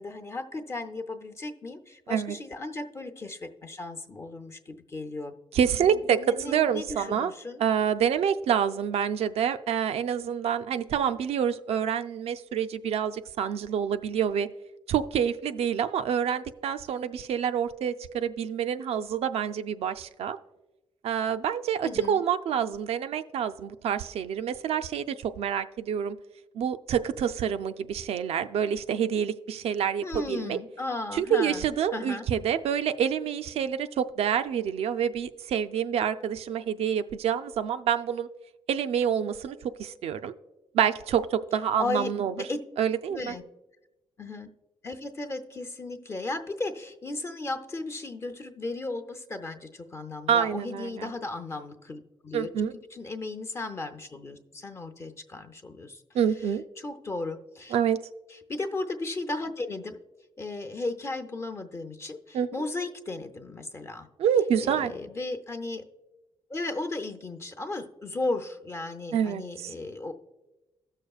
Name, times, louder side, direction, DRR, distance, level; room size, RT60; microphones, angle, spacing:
voice 1, 0.0-5.3 5.7-7.6 21.8-22.2 30.0-31.7 31.9-32.3 41.8-42.6 43.1-43.4 44.2-44.5 44.8-52.5 52.9-56.0 56.8-57.8 58.3-60.0 60.4-64.1 64.6-65.8 66.5-70.1, left 2 dB, 30° left, 7 dB, 0.6 m, -35 dB
voice 2, 5.5-6.2 6.5-7.3 7.6-14.5 14.9-20.4 21.0-26.2 26.5-30.6 31.1-38.3 38.7-40.3 40.7-42.3 42.8-43.3 50.3-51.1 52.3-52.7 56.1-56.6 57.7-58.0 62.3-62.5 64.2-64.9 69.1-69.7, right 8 dB, 90° right, 10 dB, 0.4 m, -27 dB
16.0 x 6.5 x 2.3 m, 1.0 s
wide cardioid pair, 165°, 10 cm